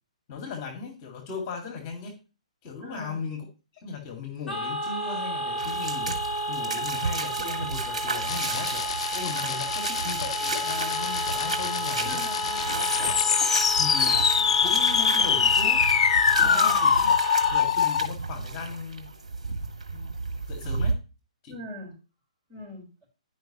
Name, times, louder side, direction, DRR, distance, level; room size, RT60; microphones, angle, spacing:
voice 1, 0.3-2.2 2.6-3.4 3.8-12.2 12.6-13.2 13.8-15.8 16.4-17.2 17.5-19.1 19.9-20.1 20.5-21.0 21.4-21.5, left 5 dB, 30° left, 1 dB, 2.0 m, -38 dB
voice 2, 2.8-3.2 12.0-13.1 16.4-16.9 21.5-22.0 22.5-22.9, equal, 30° right, -1 dB, 4.4 m, -42 dB
sound 1, 4.5-17.6, right 1 dB, 5° left, 1.7 m, -32 dB
sound 2, 5.6-20.9, right 3 dB, 70° right, 1.5 m, -33 dB
sound 3, 8.3-18.1, left 7 dB, 55° left, 0.4 m, -24 dB
10.5 x 5.3 x 2.9 m, 0.32 s
figure-of-eight pair, 125°, 4 cm